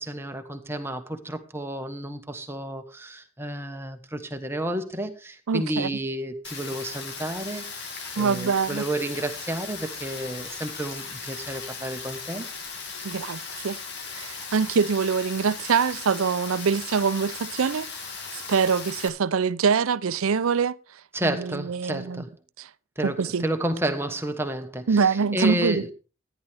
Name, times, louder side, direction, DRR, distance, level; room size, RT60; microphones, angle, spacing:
voice 1, 0.0-12.5 21.1-22.3 23.0-25.9, right 1 dB, 10° right, 1.2 m, -31 dB
voice 2, 5.5-5.9 8.2-8.8 13.0-13.8 14.1-17.9 18.3-20.7 21.2-22.2 22.6-22.7 23.0-23.5 24.9-25.8, right 5 dB, 75° right, 0.5 m, -24 dB
Rain, 6.4-19.1, left 5 dB, 55° left, 2.2 m, -37 dB
14.0 x 10.0 x 3.5 m
head